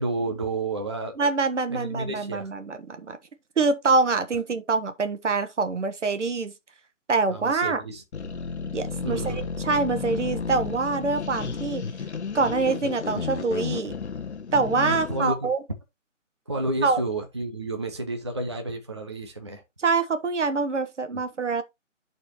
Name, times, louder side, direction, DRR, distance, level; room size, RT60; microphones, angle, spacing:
voice 1, 0.0-1.2 1.7-2.5 7.3-8.0 9.0-9.4 14.9-15.5 16.5-19.6 21.1-21.2, right 2 dB, 20° right, 0.6 m, -31 dB
voice 2, 1.2-3.2 3.6-6.5 7.1-7.8 8.7-11.9 12.3-13.9 14.5-15.6 16.8-17.0 19.8-21.6, right 4 dB, 65° right, 1.3 m, -25 dB
sound 1, 8.1-15.3, left 5 dB, 60° left, 0.9 m, -32 dB
11.5 x 4.3 x 3.0 m
hypercardioid pair, 170°, 38 cm